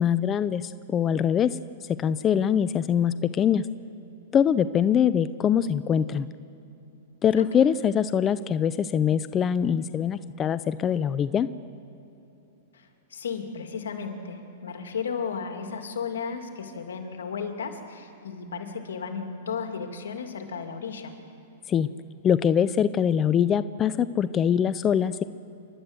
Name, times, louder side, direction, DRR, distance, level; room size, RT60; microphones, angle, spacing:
voice 1, 0.0-1.5 2.0-3.6 4.3-6.3 7.2-11.5 21.7-21.9 22.2-25.2, left 8 dB, 25° left, 14 dB, 0.5 m, -23 dB
voice 2, 7.3-7.7 12.7-21.1, left 6 dB, 85° left, 5 dB, 2.4 m, -34 dB
29.0 x 12.0 x 7.9 m, 2.9 s
hypercardioid pair, 130°, 0 cm